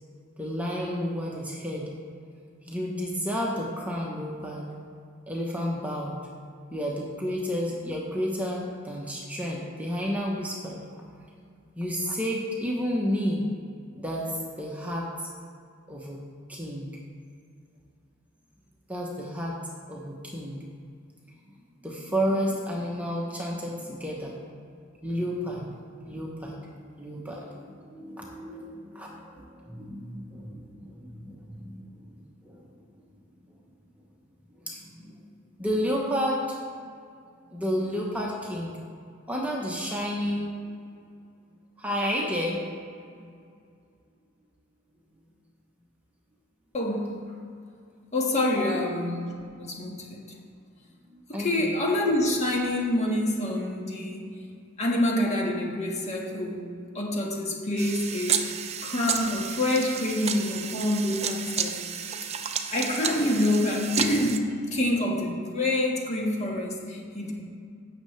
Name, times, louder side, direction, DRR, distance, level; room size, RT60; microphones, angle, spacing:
voice 1, 0.4-1.9 2.7-4.7 5.3-6.1 6.7-10.8 11.8-13.4 13.9-15.3 15.9-16.2 16.5-16.9 18.9-19.6 19.9-20.6 21.5-24.4 25.0-31.8 32.1-32.7 34.6-35.2 35.6-36.6 37.5-38.7 39.3-40.5 41.8-42.6 43.1-43.3 48.6-48.8 51.1-51.7, equal, 5° right, -3 dB, 1.0 m, -31 dB
voice 2, 46.7-47.1 48.1-49.3 49.6-50.2 51.4-54.3 54.8-56.7 56.9-58.5 58.8-61.8 62.7-67.3, left 1 dB, 35° left, -1 dB, 1.6 m, -27 dB
sound 1, 57.8-64.4, right 7 dB, 30° right, 0.5 m, -31 dB
16.0 x 6.6 x 3.3 m, 2.3 s
head